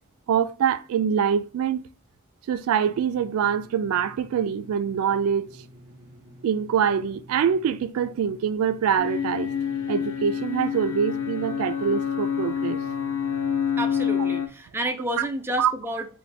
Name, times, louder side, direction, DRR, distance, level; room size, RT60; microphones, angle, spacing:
voice 1, 0.3-1.8 2.5-5.6 6.4-9.5 9.9-12.8 15.2-15.3 15.6-15.7, right 7 dB, 85° right, 0.3 m, -24 dB
sound 1, 2.8-14.0, equal, 45° right, 1.8 m, -50 dB
sound 2, 9.0-14.5, left 8 dB, 75° left, 0.5 m, -27 dB
voice 2, 13.8-16.1, right 1 dB, 10° right, 0.4 m, -30 dB
3.8 x 2.1 x 3.2 m
head